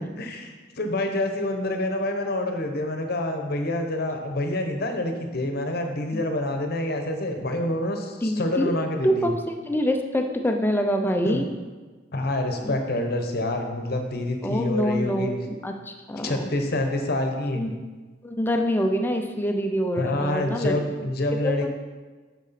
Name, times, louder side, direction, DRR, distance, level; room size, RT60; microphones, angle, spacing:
voice 1, 0.0-9.3 11.2-11.4 12.1-15.4 16.2-17.7 20.0-21.7, left 1 dB, 60° left, 5 dB, 0.9 m, -27 dB
voice 2, 8.2-8.7 9.0-11.5 12.6-12.8 14.4-16.5 17.5-17.8 18.2-20.8 21.3-21.7, equal, 10° left, 4 dB, 0.6 m, -25 dB
6.9 x 6.2 x 4.2 m, 1.3 s
head